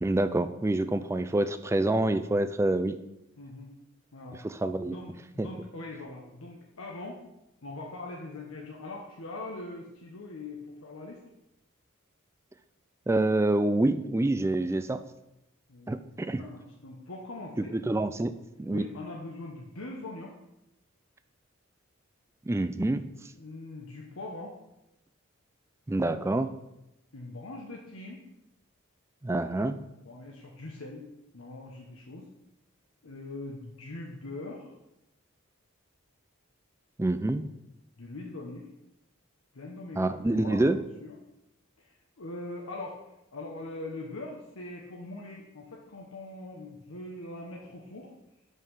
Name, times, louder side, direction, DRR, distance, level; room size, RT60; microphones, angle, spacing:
voice 1, 0.0-3.0 4.4-4.9 5.4-5.5 13.1-15.0 15.9-16.4 17.7-18.3 18.6-18.9 22.5-23.0 25.9-26.5 29.2-29.8 37.0-37.4 40.0-40.8, right 2 dB, 15° right, 11 dB, 0.3 m, -27 dB
voice 2, 3.4-3.8 4.1-4.4 4.8-7.2 7.6-11.2 15.7-15.9 16.4-17.7 18.7-20.3 23.3-24.6 27.1-28.2 30.0-31.0 31.3-32.2 33.0-34.7 38.0-38.7 39.5-41.1 41.8-43.0 43.3-48.1, left 2 dB, 80° left, -2 dB, 1.0 m, -42 dB
5.6 x 5.5 x 6.4 m, 0.90 s
head